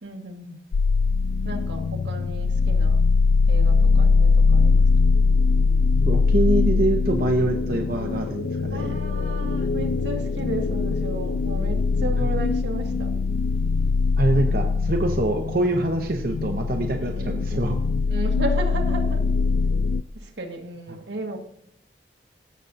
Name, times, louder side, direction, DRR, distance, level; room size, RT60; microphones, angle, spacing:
voice 1, 0.0-0.6 1.4-3.0 3.5-4.9 8.7-13.1 17.1-17.4 18.1-19.2 20.2-21.4, right 2 dB, 85° right, 3 dB, 1.6 m, -34 dB
sound 1, 0.7-20.0, left 4 dB, 75° left, 0.3 m, -22 dB
voice 2, 6.1-9.0 12.2-12.3 14.2-17.8 20.9-21.0, right 2 dB, 55° right, 3 dB, 0.8 m, -25 dB
16.5 x 6.9 x 2.6 m, 0.71 s
head